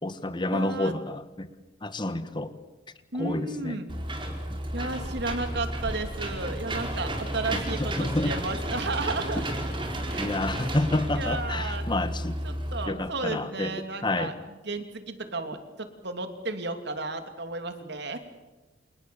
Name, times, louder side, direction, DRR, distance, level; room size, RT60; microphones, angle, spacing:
voice 1, 0.0-1.5 1.8-2.5 3.2-3.8 7.5-8.3 10.2-12.4 12.9-13.7 14.0-14.3, left 2 dB, 25° left, 12 dB, 1.5 m, -29 dB
voice 2, 0.5-0.9 3.1-4.0 4.7-9.4 10.1-10.3 11.1-11.9 12.4-14.3 14.6-18.2, right 3 dB, 60° right, 7 dB, 2.9 m, -33 dB
Engine / Mechanisms, 3.9-12.9, right 1 dB, 25° right, 4.5 m, -32 dB
29.0 x 29.0 x 7.1 m, 1.2 s
head